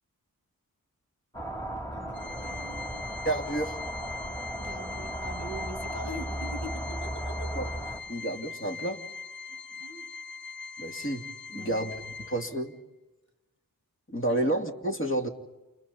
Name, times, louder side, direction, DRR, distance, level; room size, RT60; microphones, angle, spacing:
sound 1, 1.3-8.0, right 1 dB, 10° left, 3.4 m, -36 dB
voice 1, 1.9-3.0 4.6-7.6 9.5-10.1 11.5-11.9 14.3-14.4, right 1 dB, 55° left, 3 dB, 5.7 m, -42 dB
Organ, 2.1-12.7, left 4 dB, 80° left, 4.7 m, -41 dB
voice 2, 3.2-3.8 7.5-7.7 8.1-9.0 10.8-11.2 11.5-11.9 12.2-12.7 14.1-15.3, right 1 dB, 35° left, 2 dB, 2.8 m, -30 dB
29.5 x 29.5 x 4.3 m, 1.1 s
wide cardioid pair, 45°, 36 cm